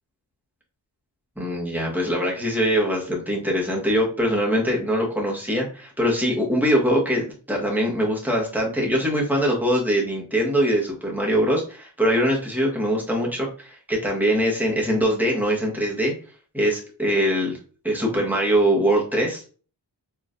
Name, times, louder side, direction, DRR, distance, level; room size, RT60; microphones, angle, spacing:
voice 1, 1.4-13.5 13.9-16.1 16.5-17.6 17.8-19.4, equal, 5° right, -2 dB, 1.5 m, -22 dB
4.7 x 3.1 x 2.5 m, 0.38 s
wide cardioid pair, 100°, 44 cm